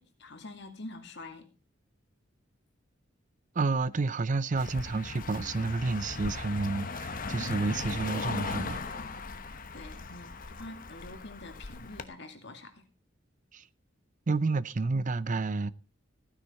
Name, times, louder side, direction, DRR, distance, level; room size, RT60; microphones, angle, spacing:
voice 1, 0.0-1.5 9.7-12.8, left 2 dB, 60° left, 2.3 m, -46 dB
voice 2, 3.5-8.8 13.5-13.7 14.3-15.7, right 3 dB, 40° right, 0.5 m, -30 dB
Car passing by, 4.6-12.0, left 4 dB, 45° left, 1.0 m, -38 dB
15.0 x 9.8 x 4.2 m
head